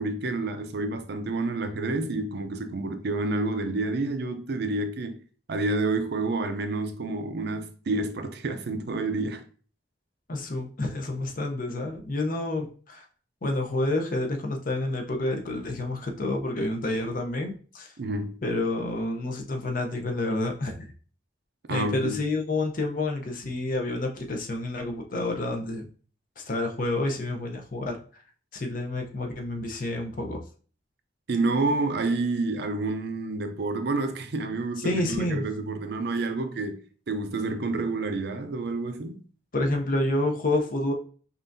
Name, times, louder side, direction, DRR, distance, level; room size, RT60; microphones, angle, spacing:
voice 1, 0.0-5.1 5.5-9.4 18.0-18.4 21.7-22.2 31.3-36.8 37.1-39.2, right 2 dB, 65° right, 0.5 m, -29 dB
voice 2, 10.3-13.0 13.4-17.9 18.4-20.9 21.7-25.9 26.4-28.0 28.5-30.4 34.8-35.4 39.5-40.9, left 2 dB, 50° left, 0.7 m, -29 dB
5.4 x 2.5 x 2.6 m
head